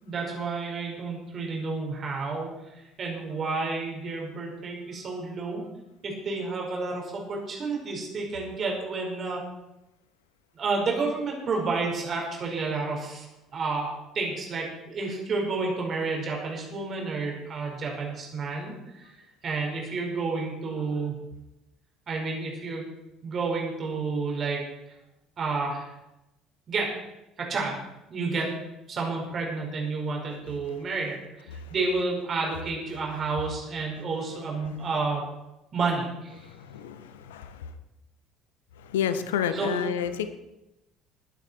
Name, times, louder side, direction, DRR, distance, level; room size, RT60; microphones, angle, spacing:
voice 1, 0.0-5.7 6.0-9.5 10.5-19.1 19.4-21.2 22.1-22.9 23.2-25.0 25.4-25.9 26.7-27.0 27.4-27.8 28.1-28.5 28.9-35.3 35.7-36.5 39.5-39.8, right 3 dB, 40° right, -1 dB, 5.0 m, -30 dB
voice 2, 36.4-37.7 38.8-40.3, left 8 dB, 70° left, 11 dB, 0.8 m, -30 dB
21.5 x 9.3 x 4.6 m, 0.93 s
figure-of-eight pair, 55°, 0 cm